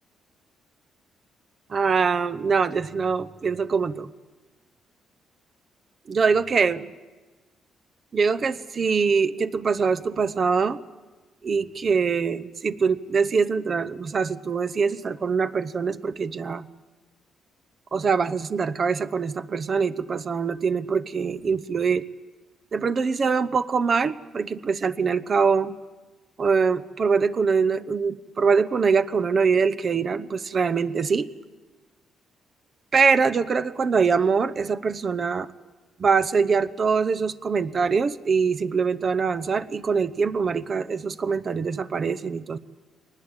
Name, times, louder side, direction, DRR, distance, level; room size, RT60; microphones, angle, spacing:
voice 1, 1.7-4.1 6.1-6.9 8.1-10.8 11.4-16.6 17.9-22.0 22.7-25.8 26.4-31.3 32.9-35.5 36.0-42.6, right 5 dB, 45° right, 13 dB, 0.8 m, -23 dB
22.0 x 19.5 x 9.0 m, 1.2 s
cardioid pair, 90°, 0 cm